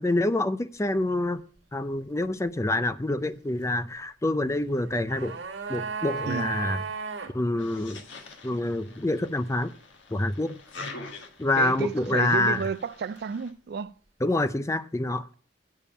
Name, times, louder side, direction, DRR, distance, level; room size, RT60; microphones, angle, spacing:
voice 1, 0.0-1.4 1.7-5.4 5.7-6.8 7.3-8.0 8.4-9.7 10.1-10.6 11.4-12.6 14.2-15.3, left 2 dB, 15° left, 0.5 m, -26 dB
sound 1, 4.7-7.3 7.6-7.7, right 5 dB, 85° right, 1.8 m, -34 dB
sound 2, 7.6-13.5, left 3 dB, 90° left, 1.6 m, -45 dB
voice 2, 11.5-13.9, right 5 dB, 60° right, 0.4 m, -32 dB
8.7 x 7.1 x 5.4 m
head